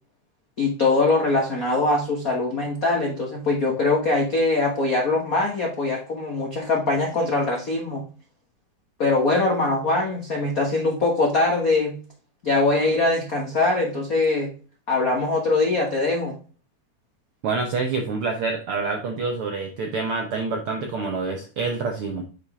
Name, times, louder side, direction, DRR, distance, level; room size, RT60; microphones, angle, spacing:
voice 1, 0.6-8.0 9.0-12.0 12.4-14.5 14.9-16.4, left 2 dB, 65° left, 0 dB, 0.8 m, -22 dB
voice 2, 17.4-22.2, right 4 dB, 75° right, 3 dB, 1.3 m, -27 dB
7.2 x 4.9 x 3.6 m, 0.37 s
omnidirectional pair, 3.6 m